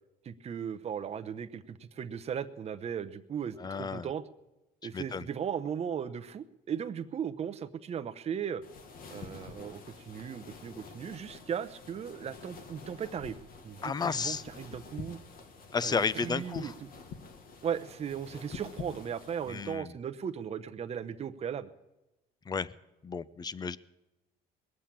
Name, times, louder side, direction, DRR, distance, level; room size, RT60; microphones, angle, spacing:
voice 1, 0.2-4.2 4.8-8.6 9.1-13.4 13.6-15.2 15.8-16.9 17.6-21.7, right 8 dB, 40° right, 9 dB, 0.7 m, -37 dB
voice 2, 3.6-4.1 4.9-5.3 13.8-14.4 15.7-16.7 19.5-19.9 22.5-22.7 23.0-23.8, left 5 dB, 25° left, 19 dB, 0.5 m, -32 dB
sound 1, 8.6-19.8, left 4 dB, 60° left, 1.7 m, -48 dB
20.0 x 7.5 x 8.5 m, 0.99 s
cardioid pair, 110°, 17 cm